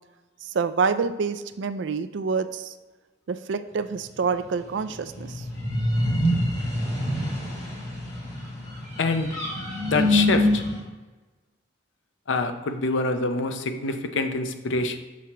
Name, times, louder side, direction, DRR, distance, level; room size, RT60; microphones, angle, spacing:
voice 1, 0.4-2.7 3.3-5.5, right 5 dB, 70° right, 11 dB, 0.4 m, -27 dB
sound 1, 4.9-10.8, left 1 dB, 35° left, 1.5 m, -25 dB
voice 2, 9.0-9.3 9.9-10.6 12.3-15.0, left 3 dB, 75° left, 8 dB, 0.6 m, -25 dB
6.2 x 5.7 x 2.9 m, 1.3 s
head